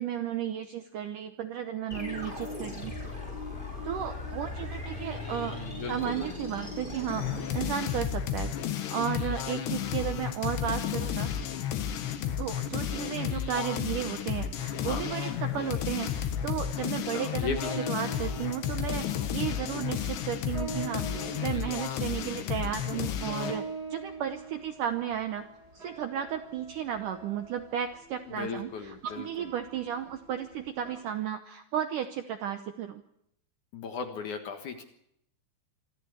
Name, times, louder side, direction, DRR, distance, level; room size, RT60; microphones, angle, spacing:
voice 1, 0.0-3.0 3.8-5.6 5.9-11.3 12.4-17.6 17.9-21.1 21.4-25.5 25.7-33.0, right 9 dB, 75° right, 8 dB, 2.0 m, -34 dB
sound 1, 1.9-8.4, left 2 dB, 10° left, 4.7 m, -39 dB
voice 2, 5.2-6.3 14.8-15.1 15.5-15.6 17.1-17.8 18.1-18.2 28.3-29.5 33.7-34.8, left 6 dB, 60° left, 6 dB, 2.4 m, -37 dB
sound 2, 7.1-23.6, left 9 dB, 90° left, 3.7 m, -32 dB
sound 3, 16.3-31.0, right 3 dB, 20° right, 6.9 m, -45 dB
25.5 x 14.0 x 8.2 m, 0.76 s
omnidirectional pair, 4.9 m